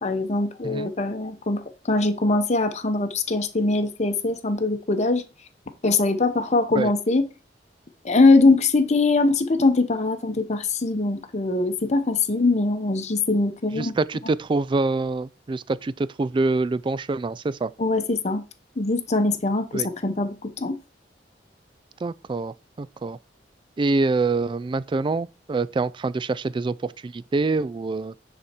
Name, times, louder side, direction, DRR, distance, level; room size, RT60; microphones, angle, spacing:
voice 1, 0.0-5.2 5.8-7.2 8.0-13.9 17.8-18.4 18.8-20.8, left 3 dB, 40° left, 0.9 m, -22 dB
voice 2, 13.8-17.7 19.7-19.9 22.0-23.2 23.8-28.1, right 3 dB, 25° right, 0.3 m, -25 dB
9.7 x 4.2 x 4.4 m
head